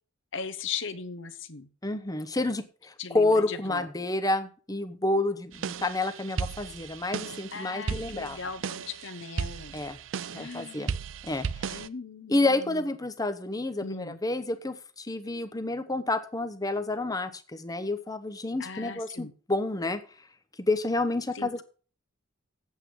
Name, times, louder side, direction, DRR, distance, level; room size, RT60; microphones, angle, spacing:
voice 1, 0.3-1.7 3.0-3.9 7.5-9.8 10.3-11.0 11.7-12.9 13.8-14.2 18.6-19.3 21.3-21.6, left 5 dB, 60° left, 10 dB, 1.0 m, -39 dB
voice 2, 1.8-8.4 9.7-10.0 10.3-10.9 11.2-11.8 12.3-20.0 20.6-21.6, left 2 dB, 20° left, 10 dB, 0.8 m, -29 dB
sound 1, 5.5-11.9, right 6 dB, 65° right, 0.5 m, -36 dB
8.7 x 8.2 x 6.2 m, 0.39 s
head